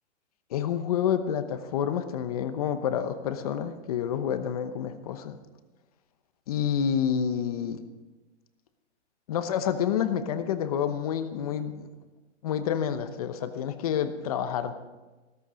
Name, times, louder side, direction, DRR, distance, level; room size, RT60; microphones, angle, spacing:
voice 1, 0.5-5.4 6.5-7.8 9.3-11.9 12.4-14.7, left 8 dB, 30° left, 10 dB, 0.9 m, -28 dB
15.5 x 14.0 x 5.2 m, 1.2 s
hypercardioid pair, 170°, 36 cm